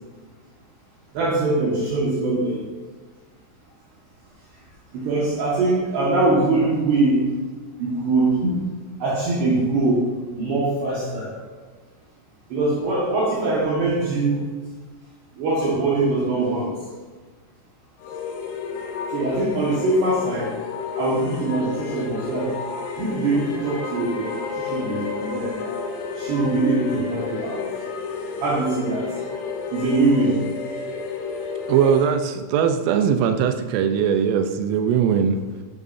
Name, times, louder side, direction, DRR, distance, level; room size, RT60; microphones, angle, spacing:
voice 1, 1.1-2.6 4.9-7.3 7.8-8.6 9.0-10.1 10.3-11.3 12.5-14.5 15.4-16.7 19.1-20.5 21.0-22.5 23.0-25.6 26.2-27.6 28.4-29.1 29.7-30.4, right 2 dB, 65° right, -6 dB, 3.6 m, -22 dB
sound 1, 18.0-32.2, left 5 dB, 75° left, 2.8 m, -31 dB
voice 2, 31.7-35.4, right 7 dB, 85° right, 7 dB, 3.4 m, -20 dB
13.5 x 11.0 x 2.8 m, 1.4 s
omnidirectional pair, 5.6 m